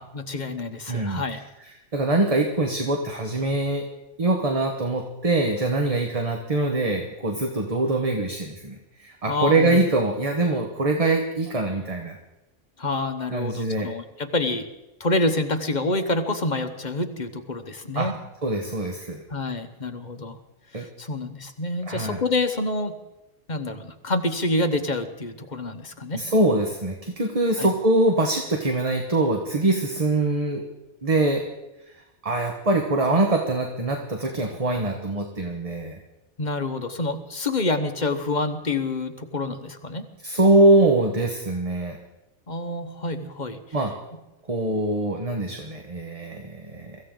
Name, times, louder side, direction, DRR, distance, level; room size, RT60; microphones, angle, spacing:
voice 1, 0.0-1.4 9.3-9.8 12.8-14.7 15.0-18.2 19.3-20.4 20.7-22.9 23.5-26.2 27.6-27.7 36.4-40.1 42.5-43.6, left 2 dB, 40° left, 7 dB, 1.2 m, -27 dB
voice 2, 0.9-1.2 1.9-3.8 4.2-12.2 13.3-13.9 17.9-18.1 18.4-19.2 20.7-20.9 21.9-22.2 26.1-30.6 31.0-31.5 32.2-36.0 40.2-42.0 43.7-43.9 44.5-47.0, right 2 dB, 30° right, 3 dB, 1.3 m, -23 dB
24.0 x 15.0 x 3.9 m, 0.97 s
omnidirectional pair, 1.3 m